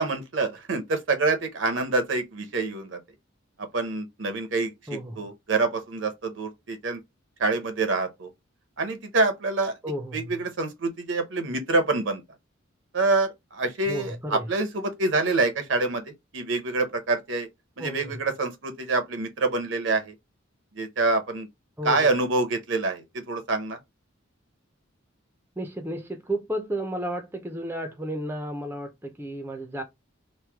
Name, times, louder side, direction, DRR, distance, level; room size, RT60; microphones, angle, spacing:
voice 1, 0.0-3.0 3.6-4.7 5.2-7.0 7.4-8.3 8.8-9.8 10.1-12.2 12.9-16.0 16.3-17.5 17.8-20.1 20.8-21.5 21.8-23.8, right 3 dB, 65° right, 0.8 m, -26 dB
voice 2, 4.9-5.3 9.8-10.4 13.8-14.5 17.8-18.2 21.8-22.1 25.6-29.8, right 1 dB, 10° right, 0.5 m, -32 dB
3.1 x 2.1 x 3.4 m
head